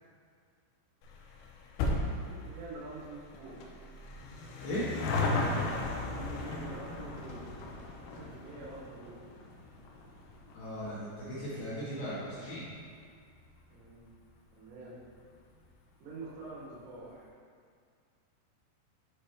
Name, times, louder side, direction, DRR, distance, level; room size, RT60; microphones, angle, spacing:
sound 1, 1.0-13.8 14.1-14.2 15.0-15.1 15.3-15.4 15.7-15.8, left 2 dB, 85° left, 2.7 m, -37 dB
voice 1, 2.2-3.6 5.8-7.5 8.0-9.2 13.7-14.1 14.5-15.0 16.0-17.4, right 3 dB, 90° right, -5 dB, 4.0 m, -46 dB
voice 2, 10.5-12.6, equal, 70° left, -10 dB, 2.5 m, -37 dB
8.6 x 4.7 x 3.2 m, 2.2 s
omnidirectional pair, 5.7 m